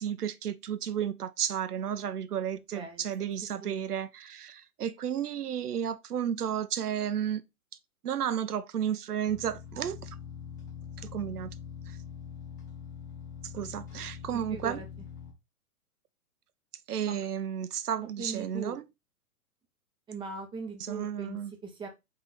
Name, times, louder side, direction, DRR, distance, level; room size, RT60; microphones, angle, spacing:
voice 1, 0.0-7.4 8.0-10.1 11.0-11.5 11.9-12.0 13.4-14.8 16.9-18.8 20.8-21.5, right 9 dB, 85° right, 0.7 m, -33 dB
voice 2, 2.7-3.1 3.6-3.8 14.5-14.8 17.1-17.2 18.2-18.8 20.1-21.4 21.6-21.9, right 4 dB, 10° right, 0.8 m, -39 dB
sound 1, 9.3-15.3, left 7 dB, 15° left, 0.3 m, -43 dB
3.6 x 3.3 x 4.1 m
hypercardioid pair, 125°, 44 cm